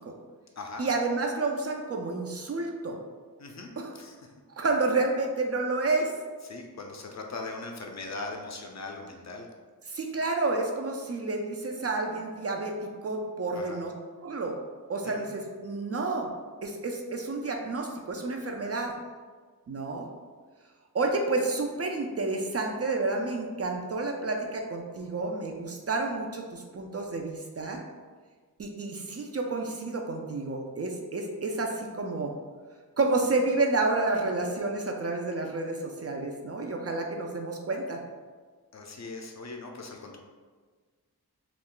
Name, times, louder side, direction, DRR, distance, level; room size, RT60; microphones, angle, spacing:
voice 1, 0.8-3.0 3.8-3.9 4.6-6.1 9.9-12.7 13.0-13.9 14.2-14.6 14.9-16.3 16.6-18.9 19.7-20.1 20.9-27.8 28.6-32.3 33.0-38.0, right 3 dB, 40° right, 2 dB, 0.4 m, -30 dB
voice 2, 3.4-4.2 6.4-9.5 13.5-13.8 15.0-15.2 38.7-40.2, left 3 dB, 45° left, 2 dB, 0.5 m, -40 dB
2.4 x 2.1 x 3.6 m, 1.5 s
cardioid pair, 55°, 38 cm